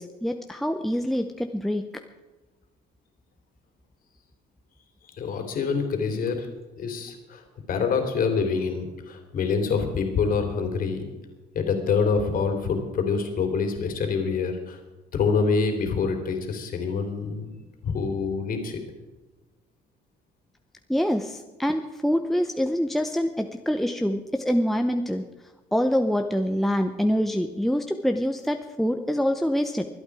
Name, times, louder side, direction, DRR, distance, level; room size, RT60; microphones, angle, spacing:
voice 1, 0.0-1.9 20.9-25.2 25.7-29.9, equal, ahead, 5 dB, 0.8 m, -25 dB
voice 2, 5.1-6.5 6.8-7.4 7.7-11.0 11.5-14.8 15.1-17.5 17.8-18.8, left 5 dB, 55° left, 5 dB, 3.3 m, -26 dB
24.0 x 8.8 x 4.8 m, 1.2 s
cardioid pair, 110°, 17 cm